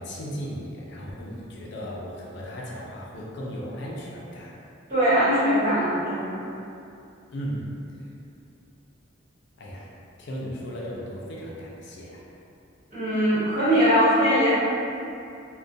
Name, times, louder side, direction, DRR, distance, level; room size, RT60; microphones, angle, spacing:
voice 1, 0.0-4.5 7.3-7.7 9.6-9.9 10.2-12.3, equal, 60° left, -4 dB, 0.4 m, -36 dB
voice 2, 4.9-6.3 12.9-14.5, equal, 40° right, -15 dB, 1.4 m, -21 dB
2.3 x 2.1 x 2.6 m, 2.6 s
head